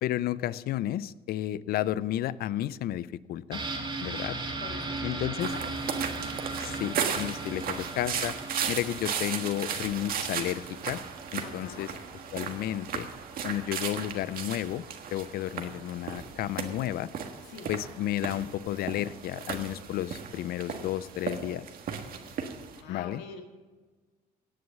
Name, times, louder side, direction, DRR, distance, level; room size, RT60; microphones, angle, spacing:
voice 1, 0.0-3.6 4.0-4.4 5.0-5.5 6.6-8.3 8.7-11.0 11.3-11.9 12.3-13.1 13.4-14.8 15.1-17.1 17.7-21.7 22.9-23.2, left 13 dB, 65° left, 19 dB, 0.5 m, -32 dB
sound 1, 3.5-13.1 13.5-13.6, right 3 dB, 30° right, 2.4 m, -38 dB
voice 2, 4.6-5.7 7.2-7.7 11.4-11.9 17.4-17.7 22.7-23.4, left 6 dB, 90° left, 4 dB, 1.8 m, -46 dB
sound 2, 5.4-22.8, right 7 dB, 60° right, 1.5 m, -36 dB
18.0 x 6.3 x 7.3 m, 1.4 s
cardioid pair, 110°, 17 cm